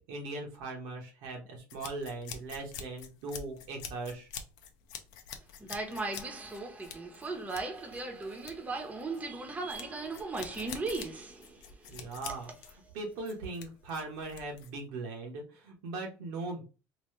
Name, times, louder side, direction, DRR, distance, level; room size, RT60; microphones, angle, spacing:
voice 1, 0.1-4.3 11.9-12.5 12.9-16.6, right 3 dB, 85° right, 1.2 m, -39 dB
sound 1, 1.7-14.8, left 7 dB, 75° left, 0.6 m, -47 dB
voice 2, 5.6-12.0, right 3 dB, 20° right, 1.0 m, -37 dB
3.0 x 2.8 x 3.2 m
cardioid pair, 110°, 7 cm